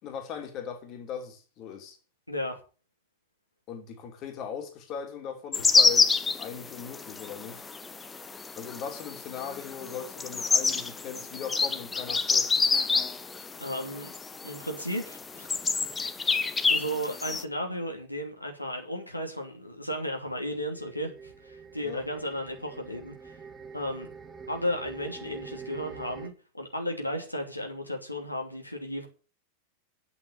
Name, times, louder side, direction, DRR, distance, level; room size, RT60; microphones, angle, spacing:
voice 1, 0.0-2.0 3.7-6.1 6.3-7.6 8.6-12.5 21.8-22.1, left 7 dB, 35° left, 3.0 m, -39 dB
voice 2, 2.3-2.6 13.6-14.1 14.4-15.5 16.7-23.4 23.7-24.1 24.5-29.1, equal, 90° left, 2.8 m, -34 dB
sound 1, 5.5-17.4, left 4 dB, 15° left, 1.0 m, -28 dB
sound 2, 20.7-26.3, right 5 dB, 20° right, 1.9 m, -46 dB
9.7 x 8.1 x 8.5 m
figure-of-eight pair, 90°, 0 cm